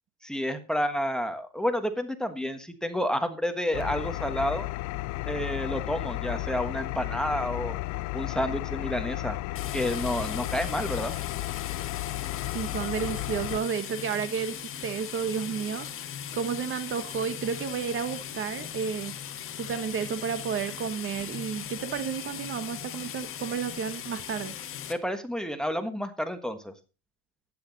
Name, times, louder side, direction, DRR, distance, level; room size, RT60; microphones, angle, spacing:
voice 1, 0.2-4.7 5.3-7.7 8.1-9.4 9.7-11.1 24.9-26.7, equal, ahead, 9 dB, 1.4 m, -30 dB
Engine, 3.7-13.6, left 19 dB, 55° left, 0.6 m, -33 dB
sound 1, 9.5-24.9, left 9 dB, 40° left, 1.7 m, -39 dB
voice 2, 12.5-15.9 16.3-19.1 19.6-24.5, right 7 dB, 35° right, 12 dB, 1.2 m, -31 dB
11.5 x 9.9 x 4.0 m, 0.32 s
supercardioid pair, 125°, 34 cm